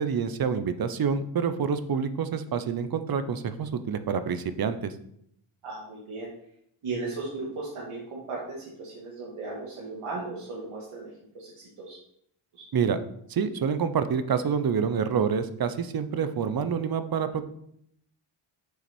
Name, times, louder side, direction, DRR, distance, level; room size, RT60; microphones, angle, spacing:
voice 1, 0.0-4.9 12.7-13.0 13.3-17.5, right 6 dB, 45° right, 11 dB, 0.8 m, -27 dB
voice 2, 5.6-6.3 6.8-12.0 12.5-12.7, right 3 dB, 90° right, -5 dB, 2.2 m, -36 dB
7.5 x 5.9 x 4.5 m, 0.71 s
cardioid pair, 95°, 49 cm